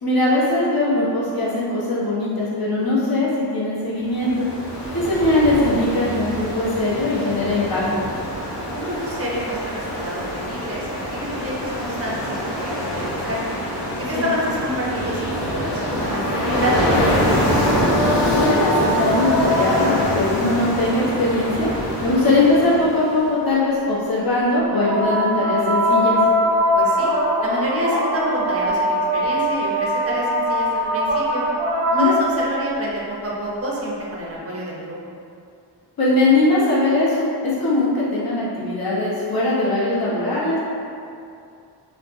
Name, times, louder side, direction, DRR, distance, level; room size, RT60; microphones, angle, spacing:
voice 1, 0.0-4.5 4.9-7.8 14.1-14.2 18.2-21.7 22.0-26.2 31.9-32.1 36.0-40.6, left 2 dB, 60° left, -7 dB, 1.0 m, -20 dB
Ocean, 4.1-23.2, equal, 90° left, 0.8 m, -25 dB
voice 2, 8.7-12.1 12.4-13.4 14.0-17.6 26.8-27.1 27.4-31.4 32.0-35.0, equal, 35° right, -5 dB, 0.8 m, -28 dB
sound 1, 15.4-20.2 24.5-32.8 34.1-34.2, equal, 75° right, 1.2 m, -22 dB
3.0 x 2.0 x 3.4 m, 2.5 s
cardioid pair, 65°, 41 cm